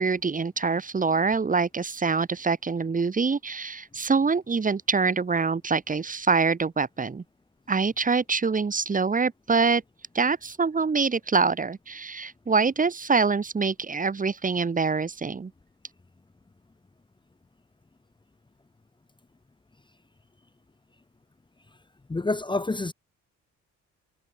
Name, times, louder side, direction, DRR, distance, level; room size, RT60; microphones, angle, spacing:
voice 1, 0.0-7.2 7.7-9.8 10.1-15.5, right 4 dB, 25° right, 1.5 m, -25 dB
voice 2, 22.1-22.9, left 2 dB, 15° left, 1.1 m, -27 dB
cardioid pair, 90°, 30 cm